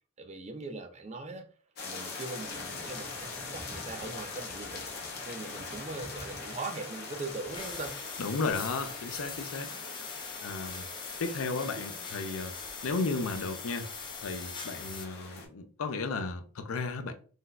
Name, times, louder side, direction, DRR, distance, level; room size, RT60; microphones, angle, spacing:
voice 1, 0.2-1.5 1.8-4.9 5.3-8.0 8.8-8.9, right 3 dB, 30° right, 0.4 m, -41 dB
sound 1, 1.8-15.5, left 4 dB, 50° left, 0.8 m, -43 dB
sound 2, 2.4-7.9, equal, 5° left, 1.3 m, -51 dB
sound 3, 7.5-15.0, left 5 dB, 25° left, 0.4 m, -42 dB
voice 2, 8.2-9.7 10.4-10.9 11.2-12.5 12.8-13.9 14.2-17.1, left 3 dB, 85° left, 0.5 m, -34 dB
3.8 x 2.7 x 2.3 m
head